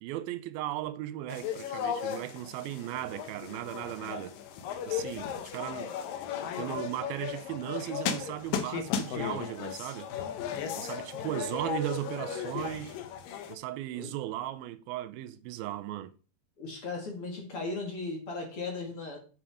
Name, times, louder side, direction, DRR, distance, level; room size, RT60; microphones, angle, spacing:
voice 1, 0.0-4.4 4.9-5.9 6.6-10.1 10.8-13.0 13.5-16.1, right 13 dB, 90° right, 2.5 m, -37 dB
sound 1, 1.3-13.6, left 8 dB, 75° left, 2.5 m, -36 dB
voice 2, 16.6-19.2, left 3 dB, 45° left, 2.3 m, -37 dB
7.3 x 6.0 x 4.9 m
omnidirectional pair, 4.2 m